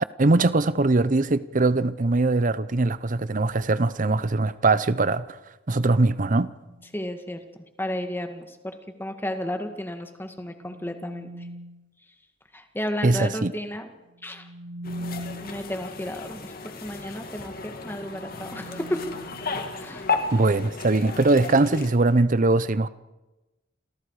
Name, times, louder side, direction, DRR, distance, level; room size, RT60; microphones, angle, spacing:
voice 1, 0.2-5.2 5.7-6.5 13.0-13.5 20.3-22.9, right 2 dB, 45° right, 0.7 m, -21 dB
sound 1, 6.5-7.0 10.1-12.0 14.1-15.8 17.8-20.1, equal, 85° right, 1.1 m, -41 dB
voice 2, 6.9-7.4 7.8-11.5 12.5-13.9 14.2-14.5 15.4-16.5 16.8-19.1 19.8-20.1, left 1 dB, 10° left, 2.0 m, -33 dB
sound 2, 14.8-21.9, left 4 dB, 50° left, 2.5 m, -34 dB
30.0 x 27.0 x 4.9 m
head